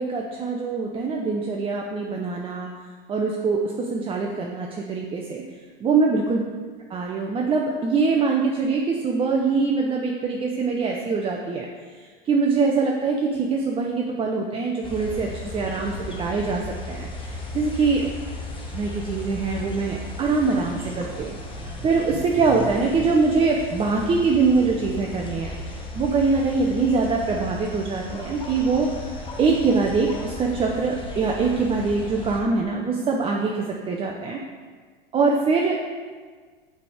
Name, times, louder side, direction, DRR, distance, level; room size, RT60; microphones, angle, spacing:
voice 1, 0.0-2.7 3.1-5.4 5.8-6.4 6.9-11.7 12.0-18.1 18.7-25.5 25.9-34.4 35.1-35.9, right 4 dB, 20° right, 0 dB, 0.5 m, -23 dB
sound 1, 14.8-32.4, left 1 dB, 15° left, 0.9 m, -36 dB
5.7 x 3.4 x 4.8 m, 1.5 s
hypercardioid pair, 90°, 29 cm